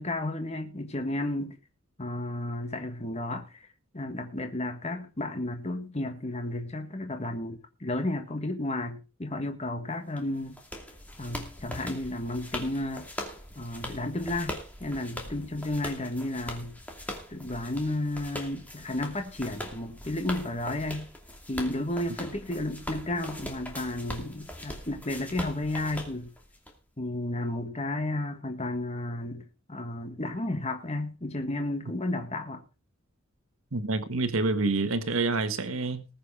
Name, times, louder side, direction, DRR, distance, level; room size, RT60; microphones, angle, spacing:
voice 1, 0.0-1.6 2.0-3.7 3.9-10.6 11.2-13.1 13.5-16.8 17.3-21.1 21.5-26.3 27.0-32.6, left 1 dB, 30° left, 1.5 m, -32 dB
sound 1, 10.2-26.7, left 1 dB, 5° left, 2.6 m, -41 dB
voice 2, 33.7-36.1, right 3 dB, 90° right, 1.3 m, -27 dB
20.0 x 6.7 x 4.7 m
head